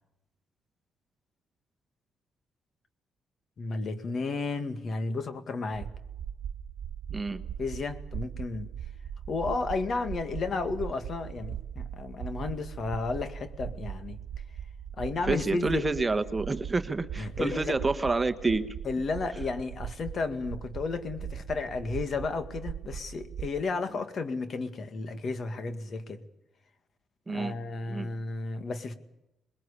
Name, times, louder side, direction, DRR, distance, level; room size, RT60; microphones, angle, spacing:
voice 1, 3.6-5.9 7.6-8.7 9.3-14.2 15.0-15.9 17.2-17.8 18.8-26.2 27.3-28.9, left 3 dB, 50° left, 9 dB, 2.1 m, -33 dB
sound 1, 5.7-23.6, right 8 dB, 65° right, 1.3 m, -40 dB
voice 2, 7.1-7.4 15.3-18.8 27.3-27.5 27.9-28.1, right 3 dB, 20° right, 10 dB, 1.2 m, -28 dB
22.0 x 21.0 x 8.5 m, 0.90 s
cardioid pair, 90°, 0 cm